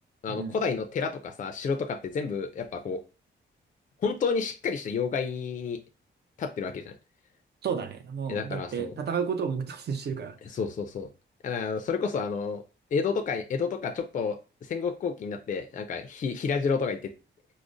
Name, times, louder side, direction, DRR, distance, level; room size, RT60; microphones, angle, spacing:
voice 1, 0.2-3.0 4.0-5.8 6.4-6.9 8.3-8.9 10.5-11.1 11.4-12.6 12.9-17.1, left 5 dB, 40° left, 0.4 m, -30 dB
voice 2, 7.6-10.4, right 6 dB, 55° right, 0.6 m, -32 dB
4.8 x 2.0 x 2.5 m
wide cardioid pair, 125°, 20 cm